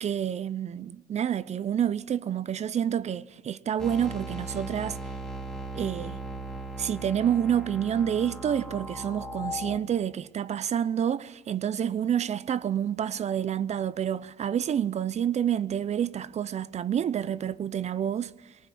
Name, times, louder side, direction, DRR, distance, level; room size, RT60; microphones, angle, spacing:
voice 1, 0.0-5.0 5.7-6.2 6.8-18.6, right 9 dB, 40° right, 0.7 m, -28 dB
sound 1, 3.8-9.8, right 1 dB, 5° left, 2.3 m, -38 dB
22.5 x 19.5 x 8.5 m
cardioid pair, 110°, 17 cm